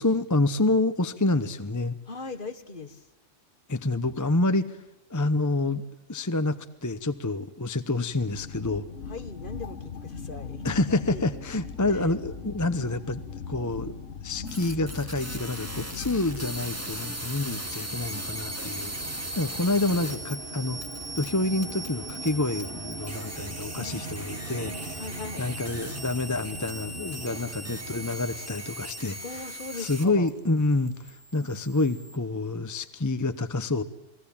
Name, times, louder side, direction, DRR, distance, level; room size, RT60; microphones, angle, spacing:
voice 1, 0.0-2.0 3.7-4.8 5.1-5.8 6.1-8.8 10.6-13.2 13.5-13.9 14.2-18.9 19.4-20.8 21.2-25.1 25.4-33.8, left 2 dB, 15° left, 11 dB, 0.9 m, -28 dB
voice 2, 2.1-3.1 9.1-10.6 10.9-11.3 11.9-12.0 12.6-13.0 23.7-25.4 29.2-30.3, left 3 dB, 45° left, 10 dB, 1.7 m, -40 dB
sound 1, 8.1-17.2, left 5 dB, 70° left, 1.6 m, -39 dB
sound 2, 14.5-30.3 30.6-32.2, right 1 dB, 10° right, 2.3 m, -38 dB
sound 3, 16.4-30.4, right 3 dB, 45° right, 1.8 m, -42 dB
29.0 x 20.0 x 8.7 m, 0.87 s
omnidirectional pair, 1.3 m